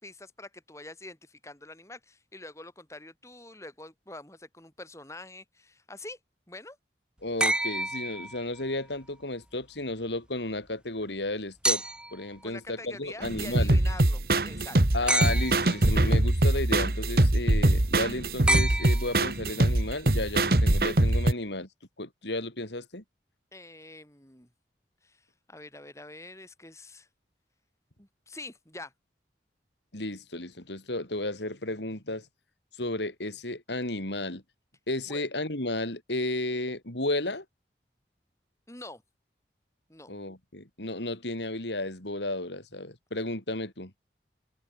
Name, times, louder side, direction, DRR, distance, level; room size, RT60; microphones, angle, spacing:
voice 1, 0.0-6.2 6.5-6.8 12.4-14.8 23.5-24.5 25.0-27.1 28.0-28.9 35.1-35.2 38.7-39.0 39.9-40.1, left 2 dB, 15° left, 6.0 m, -45 dB
voice 2, 7.2-11.8 12.1-13.8 14.9-21.7 22.0-23.0 29.9-32.3 32.8-34.4 34.9-37.4 40.1-43.9, left 2 dB, 85° left, 5.0 m, -33 dB
sound 1, 7.4-8.8 11.6-12.3 15.1-15.9 18.5-19.5 21.1-21.2, right 1 dB, 5° right, 0.9 m, -29 dB
sound 2, 13.2-21.3, right 1 dB, 55° right, 1.5 m, -23 dB
head